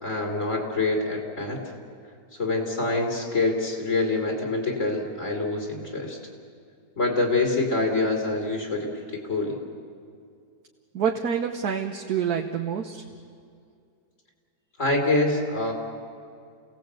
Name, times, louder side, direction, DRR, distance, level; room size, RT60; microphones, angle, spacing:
voice 1, 0.0-1.7 2.4-6.2 7.0-9.6 14.8-15.7, left 2 dB, 50° left, -1 dB, 3.6 m, -26 dB
voice 2, 10.9-13.0, right 7 dB, 70° right, 3 dB, 1.6 m, -27 dB
29.5 x 18.0 x 8.3 m, 2.3 s
omnidirectional pair, 1.8 m